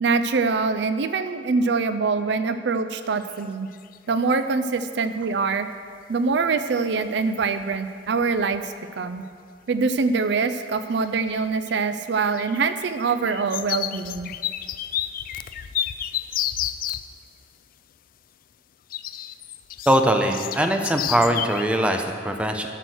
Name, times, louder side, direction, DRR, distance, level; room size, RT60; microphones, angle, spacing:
voice 1, 0.0-3.7 4.1-5.7 6.1-9.2 9.7-14.3, right 4 dB, 70° right, 11 dB, 0.5 m, -24 dB
sound 1, 3.2-3.4 3.7-4.3 6.3-6.4 7.0-7.1 7.4-7.8 8.1-8.6 9.2-9.3 10.3-10.8 11.1-17.1 18.9-21.6, left 11 dB, 50° left, 0.3 m, -31 dB
voice 2, 19.9-22.7, right 1 dB, 5° right, 4 dB, 0.7 m, -21 dB
12.0 x 6.3 x 6.3 m, 2.1 s
head